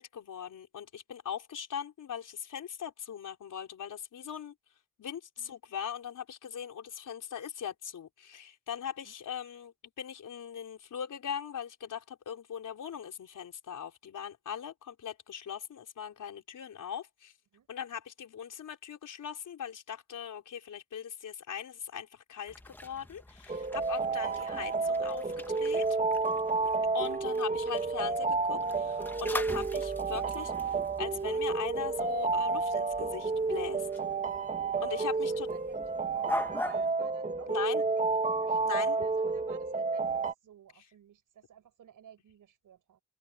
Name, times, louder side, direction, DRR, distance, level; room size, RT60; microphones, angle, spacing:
voice 1, 0.0-4.5 5.0-17.3 17.7-25.9 26.9-33.9 34.8-35.5 37.5-37.8 38.6-39.0, left 8 dB, 75° left, 4.6 m, -40 dB
sound 1, 22.5-36.9, left 1 dB, 5° left, 1.1 m, -43 dB
sound 2, 23.5-40.3, right 4 dB, 25° right, 1.2 m, -31 dB
voice 2, 34.7-43.0, right 9 dB, 90° right, 6.7 m, -56 dB
open air
wide cardioid pair, 160°, 31 cm